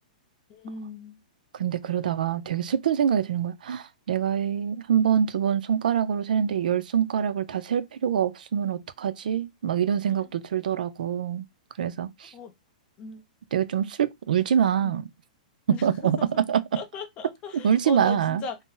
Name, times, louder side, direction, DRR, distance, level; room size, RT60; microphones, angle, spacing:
voice 1, 0.5-1.2 10.1-10.2 12.3-12.5 13.0-13.2 15.7-15.8 16.2-16.3 16.7-18.6, left 4 dB, 25° left, 0.5 m, -38 dB
voice 2, 1.5-11.4 11.8-12.3 13.5-15.1 15.7-16.6 17.5-18.4, right 8 dB, 80° right, 0.4 m, -25 dB
2.6 x 2.0 x 3.7 m
hypercardioid pair, 165°, 4 cm